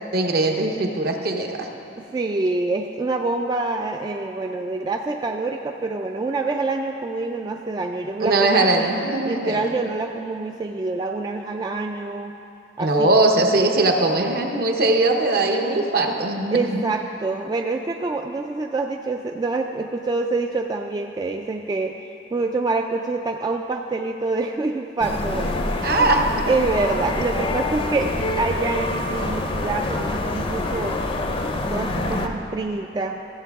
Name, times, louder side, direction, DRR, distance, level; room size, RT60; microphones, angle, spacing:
voice 1, 0.1-1.7 8.2-9.7 12.8-16.8 25.8-26.5, right 2 dB, 60° right, 3 dB, 0.9 m, -20 dB
voice 2, 2.0-8.9 9.2-12.4 12.8-13.1 16.5-22.0 22.3-26.1 26.5-31.0 31.7-33.2, right 3 dB, 25° right, 3 dB, 0.3 m, -26 dB
sound 1, 25.0-32.3, left 2 dB, 30° left, 0.6 m, -26 dB
14.5 x 7.8 x 3.5 m, 2.8 s
head